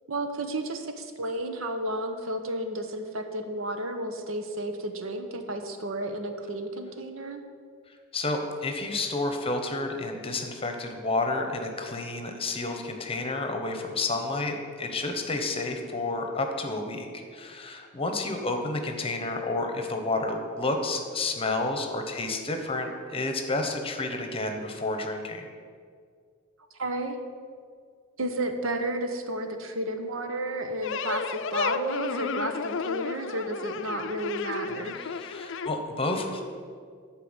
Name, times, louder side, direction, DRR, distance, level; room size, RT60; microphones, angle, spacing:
voice 1, 0.1-7.4 26.8-27.2 28.2-35.0, right 1 dB, 80° right, 6 dB, 0.9 m, -32 dB
voice 2, 8.1-17.1 17.3-25.5 35.0-36.4, left 2 dB, 30° left, 5 dB, 1.0 m, -30 dB
sound 1, 30.8-35.7, left 6 dB, 65° left, 0.5 m, -32 dB
11.0 x 4.6 x 8.0 m, 2.1 s
head